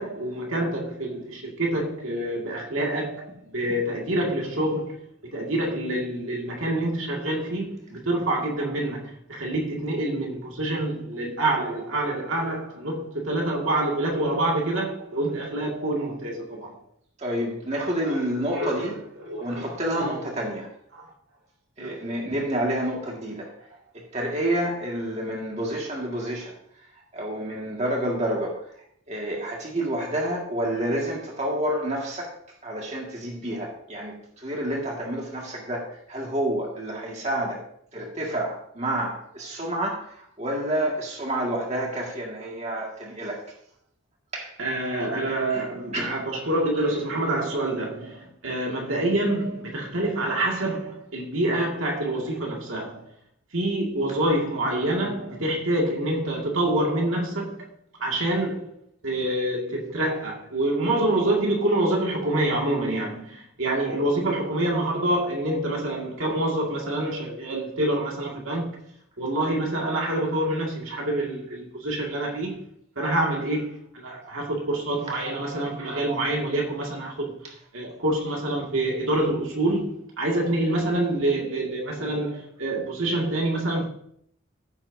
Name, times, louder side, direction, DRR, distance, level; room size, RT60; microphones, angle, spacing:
voice 1, 0.0-16.8 18.0-18.2 18.5-18.9 19.2-19.7 20.0-20.2 20.9-21.1 21.8-22.0 44.6-53.1 53.5-57.7 58.0-58.7 59.0-68.8 69.2-72.6 73.0-77.4 77.7-83.9, right 1 dB, 70° right, 2.1 m, -26 dB
voice 2, 17.2-19.0 19.4-20.7 21.8-23.5 23.9-26.5 27.1-28.6 29.1-32.3 32.6-37.6 37.9-43.4 44.3-44.5 45.5-45.6 45.9-46.2 75.1-75.2, right 1 dB, 30° right, 1.9 m, -29 dB
15.0 x 7.4 x 2.7 m
head